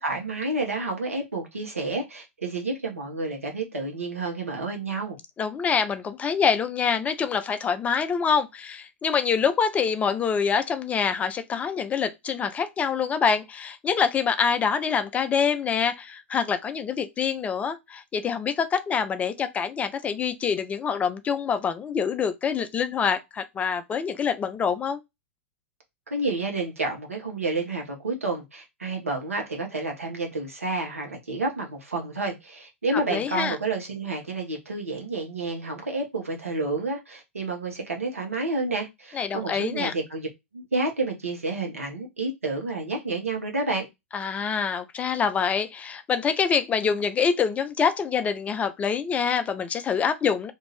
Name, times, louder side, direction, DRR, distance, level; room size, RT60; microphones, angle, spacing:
voice 1, 0.0-5.2 26.1-40.3 40.5-43.9, right 3 dB, 80° right, 1.0 m, -30 dB
voice 2, 5.4-25.0 32.9-33.6 39.1-39.9 44.1-50.5, left 6 dB, 20° left, 0.4 m, -25 dB
2.6 x 2.5 x 3.1 m
figure-of-eight pair, 100°, 7 cm